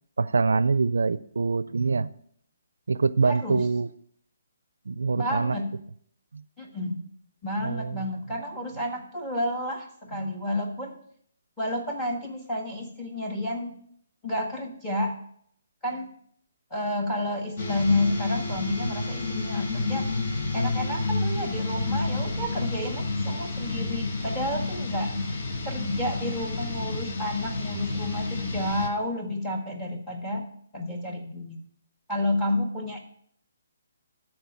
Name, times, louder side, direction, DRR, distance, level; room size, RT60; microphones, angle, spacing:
voice 1, 0.2-2.1 2.9-3.9 4.9-5.6 6.3-6.4 7.6-8.1 10.1-10.3, right 4 dB, 85° right, 17 dB, 0.4 m, -25 dB
voice 2, 3.2-3.6 5.1-5.7 6.6-7.0 7.4-11.0 11.6-13.7 14.2-15.1 15.8-16.1 16.7-20.1 20.5-25.1 25.6-30.4 30.7-31.6 32.1-33.0, left 1 dB, 5° left, 3 dB, 1.4 m, -30 dB
sound 1, 17.6-28.9, left 3 dB, 45° left, 1.5 m, -30 dB
12.5 x 4.4 x 5.8 m, 0.65 s
hypercardioid pair, 155°, 0 cm